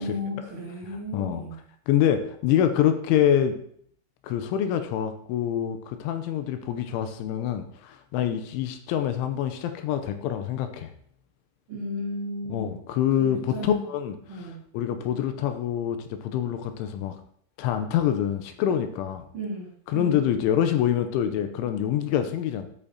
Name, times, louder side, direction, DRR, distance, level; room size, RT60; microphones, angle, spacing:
voice 1, 0.0-1.5 11.7-12.8 13.2-13.8 14.3-14.6 19.3-20.2, left 1 dB, 80° right, -3 dB, 1.2 m, -34 dB
voice 2, 1.1-1.4 1.9-3.6 4.2-10.9 12.5-17.2 17.6-19.2 19.9-22.7, left 10 dB, 85° left, 8 dB, 3.1 m, -26 dB
13.5 x 8.7 x 2.9 m, 0.63 s
omnidirectional pair, 5.7 m